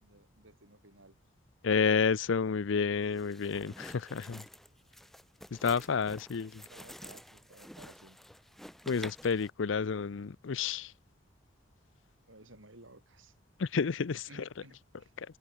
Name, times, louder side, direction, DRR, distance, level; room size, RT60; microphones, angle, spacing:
voice 1, 0.0-1.2 5.9-6.3 6.7-8.2 12.3-13.3 14.3-15.1, right 2 dB, 85° right, 6.2 m, -56 dB
voice 2, 1.6-4.4 5.5-6.6 8.9-10.9 13.6-14.3 15.2-15.3, left 5 dB, 75° left, 0.5 m, -30 dB
sound 1, 3.1-9.5, equal, ahead, 4.4 m, -50 dB
head